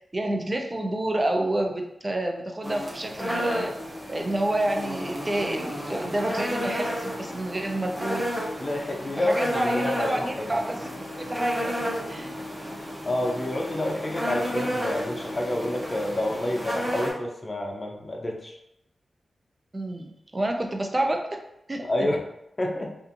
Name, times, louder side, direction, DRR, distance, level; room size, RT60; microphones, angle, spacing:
voice 1, 0.0-3.7 4.1-8.3 9.2-11.7 12.1-12.3 19.7-21.4 21.7-21.8, right 1 dB, 35° right, 2 dB, 0.5 m, -29 dB
sound 1, 2.6-17.1, equal, 10° right, 0.8 m, -32 dB
voice 2, 8.6-10.5 13.0-18.5 21.8-22.2 22.6-23.0, left 1 dB, 40° left, 1 dB, 0.6 m, -29 dB
2.5 x 2.5 x 2.5 m, 0.82 s
cardioid pair, 45°, 0 cm